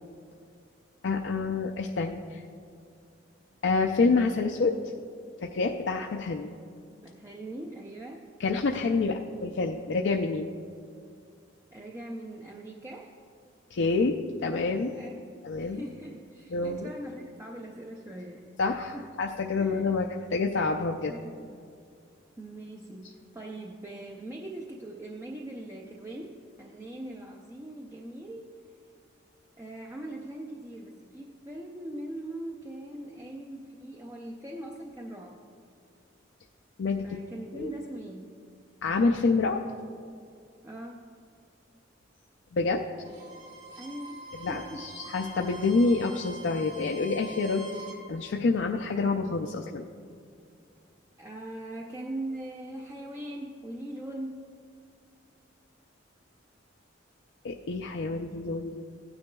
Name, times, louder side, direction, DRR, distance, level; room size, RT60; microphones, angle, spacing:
voice 1, 1.0-2.4 3.6-4.8 5.4-6.5 8.4-10.5 13.7-14.9 15.4-15.8 16.5-16.9 18.6-21.1 36.8-37.1 37.5-37.7 38.8-39.6 42.5-42.8 44.4-47.6 48.1-49.8 57.4-58.8, left 3 dB, 65° left, 2 dB, 0.4 m, -27 dB
voice 2, 7.0-8.3 11.7-13.2 14.9-15.3 15.6-18.6 18.9-19.0 19.6-19.8 21.1-21.5 22.4-28.5 29.6-35.4 37.0-38.4 40.6-41.1 43.8-44.9 51.2-54.5, right 1 dB, 15° right, 1 dB, 0.4 m, -41 dB
Bowed string instrument, 43.0-48.0, right 2 dB, 65° right, 2.7 m, -45 dB
16.0 x 9.6 x 2.3 m, 2.4 s
head